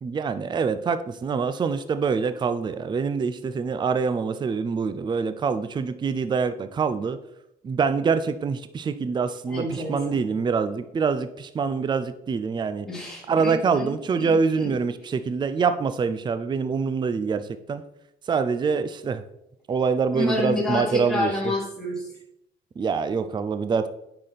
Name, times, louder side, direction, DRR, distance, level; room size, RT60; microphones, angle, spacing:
voice 1, 0.0-7.2 7.6-12.9 13.3-17.8 18.3-19.2 19.7-21.3 22.8-23.9, right 5 dB, 25° right, 11 dB, 0.5 m, -25 dB
voice 2, 9.5-10.2 12.9-13.9 14.2-14.7 20.1-22.1, left 2 dB, 5° left, -5 dB, 3.8 m, -29 dB
9.5 x 5.9 x 4.1 m, 0.80 s
cardioid pair, 110°, 17 cm